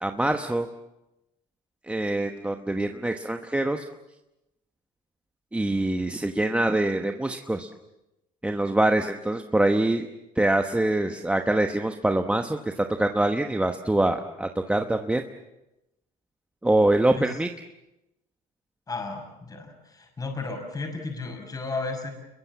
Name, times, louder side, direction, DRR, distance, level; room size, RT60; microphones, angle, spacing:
voice 1, 0.0-0.7 1.8-3.9 5.5-7.7 8.4-10.1 10.4-15.2 16.6-17.5, right 1 dB, 5° right, 5 dB, 1.1 m, -24 dB
voice 2, 18.9-22.1, left 3 dB, 20° left, 3 dB, 6.3 m, -34 dB
29.0 x 22.5 x 7.4 m, 0.93 s
cardioid pair, 130°, 17 cm